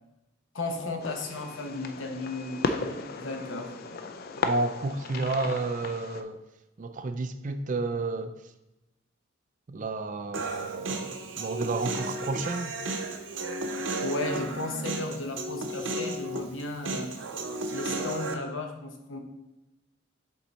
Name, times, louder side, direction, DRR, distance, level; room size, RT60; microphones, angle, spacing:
voice 1, 0.5-3.7 14.0-17.1 17.7-19.2, left 2 dB, 80° left, 0.9 m, -35 dB
Fireworks, 1.0-6.2, left 4 dB, 50° left, 0.4 m, -35 dB
voice 2, 4.4-6.4 6.8-8.4 9.7-12.8, right 3 dB, 40° right, 0.4 m, -31 dB
Human voice, 10.3-18.3, right 2 dB, 70° right, 0.7 m, -33 dB
7.3 x 3.8 x 4.1 m
head